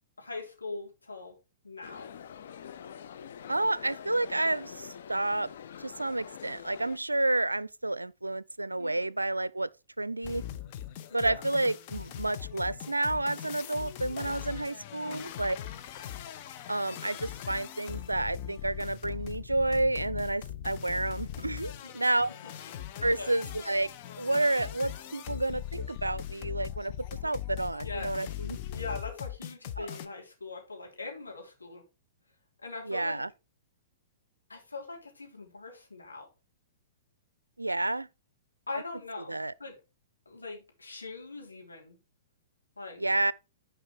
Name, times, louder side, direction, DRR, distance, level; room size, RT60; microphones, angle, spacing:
voice 1, 0.2-1.4 1.6-2.1 8.8-9.1 11.1-11.3 15.0-15.3 21.8-22.1 23.1-23.3 27.8-28.3 28.7-31.8 32.6-33.2 34.5-36.3 38.7-39.8 40.3-42.0 42.8-43.0, left 3 dB, 80° left, 3.5 m, -41 dB
sound 1, 1.8-7.0, left 8 dB, 60° left, 0.8 m, -45 dB
voice 2, 3.5-5.5 5.8-9.7 10.0-10.4 11.1-15.6 16.7-22.3 23.0-23.9 24.2-26.9 27.2-28.6 29.8-30.0 32.8-33.3 37.6-38.1 39.3-39.5 43.0-43.3, right 2 dB, 85° right, 0.4 m, -30 dB
sound 2, 10.2-30.1, left 11 dB, 45° left, 1.0 m, -40 dB
10.5 x 5.0 x 4.6 m
figure-of-eight pair, 110°, 0 cm